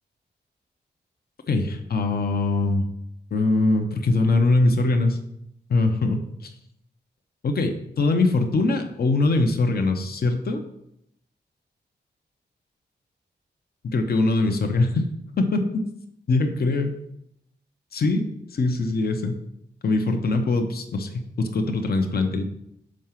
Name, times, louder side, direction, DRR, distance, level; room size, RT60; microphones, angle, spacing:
voice 1, 1.5-2.8 3.3-5.2 5.7-6.5 7.4-10.6 13.8-15.1 15.4-15.8 16.3-16.9 17.9-18.3 18.5-19.4 19.8-22.4, left 2 dB, 60° left, 5 dB, 0.9 m, -22 dB
6.3 x 4.7 x 5.8 m, 0.78 s
cardioid pair, 90°, 18 cm